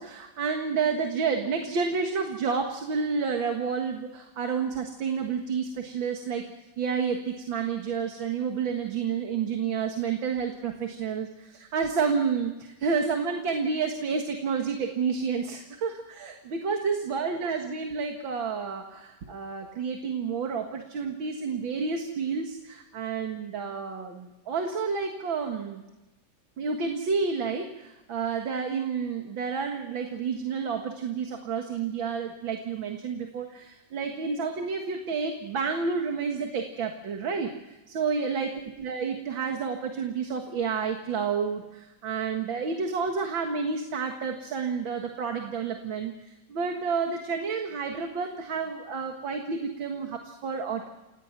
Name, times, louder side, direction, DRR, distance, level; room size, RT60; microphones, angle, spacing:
voice 1, 0.0-25.8 26.6-50.9, right 5 dB, 90° right, 4 dB, 2.5 m, -30 dB
29.0 x 18.5 x 6.0 m, 1.0 s
omnidirectional pair, 2.0 m